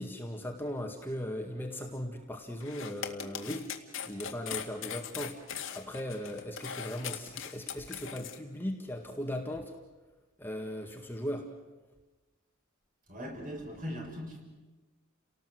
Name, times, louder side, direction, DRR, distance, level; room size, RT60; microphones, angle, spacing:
voice 1, 0.0-3.7 4.1-5.4 5.7-9.7 10.4-11.5, equal, 10° left, 2 dB, 2.0 m, -38 dB
sound 1, 2.6-8.4, left 8 dB, 70° left, 2.0 m, -40 dB
voice 2, 13.1-14.4, equal, 40° right, 1 dB, 6.2 m, -39 dB
29.5 x 19.0 x 7.9 m, 1.2 s
head